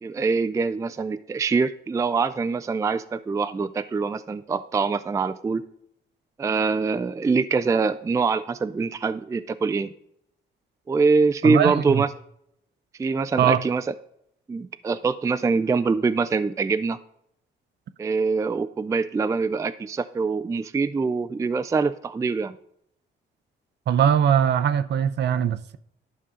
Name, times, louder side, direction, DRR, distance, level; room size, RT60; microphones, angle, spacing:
voice 1, 0.0-5.6 6.4-9.9 10.9-12.1 13.0-13.8 14.5-17.0 18.0-22.6, right 4 dB, 15° right, 0.3 m, -24 dB
voice 2, 11.4-12.0 13.4-13.6 23.9-25.8, right 9 dB, 60° right, 0.6 m, -21 dB
11.5 x 5.4 x 3.7 m
cardioid pair, 90°, 20 cm